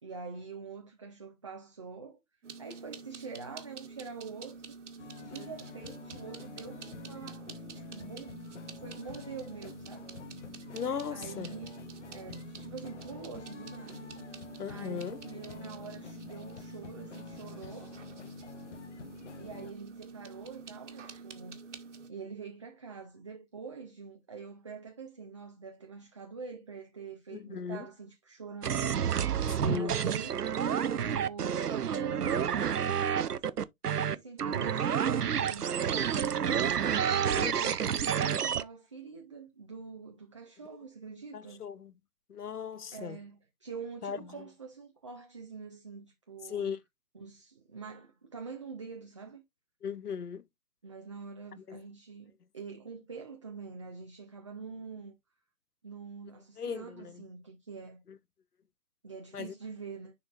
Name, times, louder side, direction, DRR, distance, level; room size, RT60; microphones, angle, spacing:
voice 1, 0.0-2.2 2.6-4.7 5.2-10.1 11.1-11.7 12.1-14.1 14.6-18.0 19.3-21.6 22.1-29.1 29.7-30.4 30.9-33.6 34.0-36.7 37.0-41.6 42.9-46.7 47.1-49.4 50.8-55.1 55.8-58.0 59.0-60.1, right 5 dB, 20° right, 0.6 m, -45 dB
sound 1, 2.4-22.1, right 5 dB, 50° right, 1.4 m, -48 dB
sound 2, 5.0-19.7, left 6 dB, 50° left, 0.9 m, -48 dB
voice 2, 10.7-11.5 14.6-15.2 27.3-27.9 29.6-30.0 37.4-37.5 41.3-41.9 42.3-43.2 44.0-44.2 46.5-46.8 49.8-50.4 51.6-51.8 56.6-57.2 58.1-58.2 59.3-59.5, left 6 dB, 90° left, 0.8 m, -37 dB
sound 3, 28.6-38.6, right 8 dB, 90° right, 0.7 m, -29 dB
10.0 x 4.3 x 2.4 m
figure-of-eight pair, 145°, 45 cm